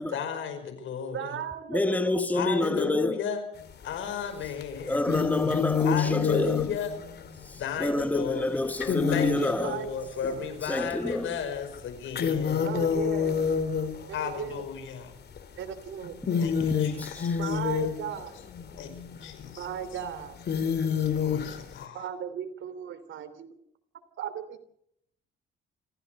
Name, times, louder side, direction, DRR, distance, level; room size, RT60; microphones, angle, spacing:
voice 1, 0.1-1.3 2.3-3.5 3.8-5.1 5.8-6.9 7.5-8.6 9.1-12.9 14.1-15.1 16.4-17.6 18.8-18.9 19.2-19.7 21.2-22.1, left 7 dB, 75° left, 5.4 m, -34 dB
voice 2, 1.1-2.2 6.4-6.5 9.6-9.9 10.2-10.4 12.6-13.5 14.1-14.6 15.6-16.2 17.4-18.3 19.6-20.4 21.9-23.5 24.2-24.6, right 8 dB, 75° right, 3.2 m, -36 dB
voice 3, 1.7-3.2 4.9-6.7 7.5-9.8 10.6-11.4 16.5-17.4, left 1 dB, 10° left, 1.5 m, -28 dB
sound 1, 3.6-4.1 4.6-10.4 11.0-11.1 11.5-14.5 15.4-15.6 16.0-21.8, left 7 dB, 55° left, 3.3 m, -29 dB
26.5 x 16.0 x 6.7 m
cardioid pair, 90°, 20 cm